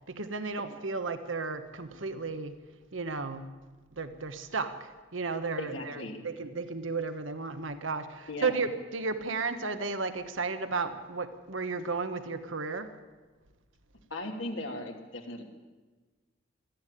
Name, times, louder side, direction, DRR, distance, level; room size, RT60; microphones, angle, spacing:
voice 1, 0.1-2.6 2.9-3.5 4.0-12.9, right 4 dB, 80° right, 9 dB, 1.3 m, -34 dB
voice 2, 5.6-6.2 8.3-8.5 14.1-15.4, left 1 dB, 80° left, 2 dB, 2.9 m, -37 dB
19.0 x 14.0 x 9.9 m, 1.3 s
head